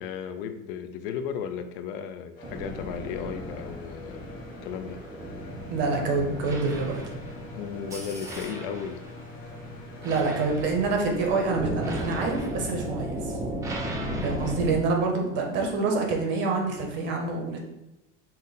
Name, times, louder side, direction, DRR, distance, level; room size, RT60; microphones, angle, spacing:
voice 1, 0.0-4.3 4.6-5.0 7.5-9.0 13.8-14.2, left 7 dB, 70° left, 9 dB, 0.5 m, -35 dB
sound 1, 2.4-12.0, left 3 dB, 30° left, 0.9 m, -46 dB
sound 2, 2.4-14.8, right 1 dB, 10° right, 0.3 m, -35 dB
voice 2, 5.7-7.0 10.0-13.3 14.2-17.6, right 3 dB, 40° right, 2 dB, 0.8 m, -26 dB
5.4 x 2.1 x 4.0 m, 0.93 s
cardioid pair, 165°, 30 cm